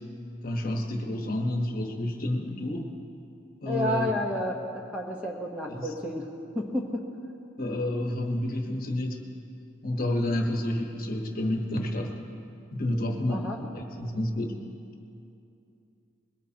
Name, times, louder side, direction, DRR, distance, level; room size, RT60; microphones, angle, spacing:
voice 1, 0.4-2.9 3.6-4.1 5.7-5.9 7.6-9.2 9.8-12.2 12.7-14.6, left 1 dB, 45° left, 2 dB, 1.3 m, -29 dB
voice 2, 3.7-6.3 6.5-7.0 13.3-13.6, left 1 dB, 5° right, -1 dB, 1.1 m, -31 dB
21.5 x 18.0 x 2.9 m, 2.6 s
head